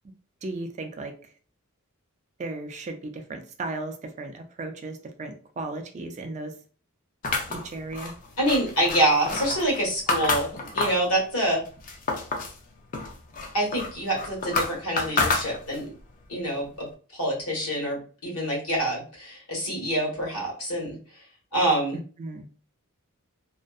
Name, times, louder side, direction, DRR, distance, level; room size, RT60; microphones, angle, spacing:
voice 1, 0.4-1.1 2.4-6.5 7.5-8.1 22.2-22.5, right 2 dB, 30° right, 6 dB, 0.3 m, -35 dB
sound 1, 7.2-11.1 11.5-12.6 12.9-15.9, left 3 dB, 40° left, 0.4 m, -29 dB
voice 2, 8.4-11.6 13.5-15.9 16.3-16.9 17.1-21.0 21.5-22.0, right 1 dB, 75° left, -3 dB, 1.3 m, -26 dB
2.6 x 2.1 x 2.3 m, 0.40 s
head